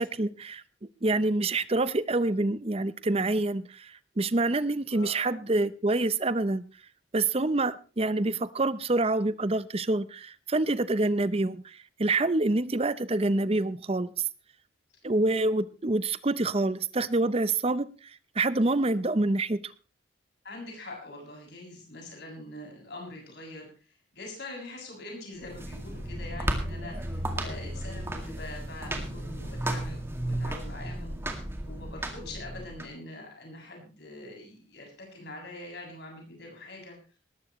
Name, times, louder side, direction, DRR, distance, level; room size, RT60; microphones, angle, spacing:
voice 1, 0.0-6.7 7.1-14.3 15.0-18.1 18.4-19.7, right 2 dB, 30° right, 16 dB, 0.6 m, -27 dB
voice 2, 4.9-5.3 20.4-23.7 24.1-37.0, left 2 dB, 55° left, 1 dB, 7.1 m, -44 dB
sound 1, 25.4-32.9, right 1 dB, 10° right, 2.1 m, -34 dB
19.0 x 14.0 x 3.1 m, 0.35 s
head